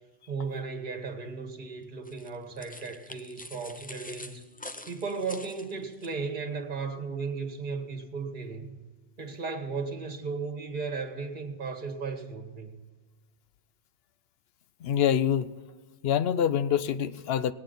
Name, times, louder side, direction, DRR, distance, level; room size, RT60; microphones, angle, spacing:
voice 1, 0.3-4.5 4.9-8.8 9.2-12.8, right 4 dB, 50° right, 1.5 m, -35 dB
sound 1, 2.0-6.1, left 1 dB, 15° left, 0.3 m, -46 dB
voice 2, 14.8-15.5 16.0-17.5, left 9 dB, 75° left, 0.8 m, -25 dB
19.0 x 8.8 x 3.9 m
omnidirectional pair, 1.0 m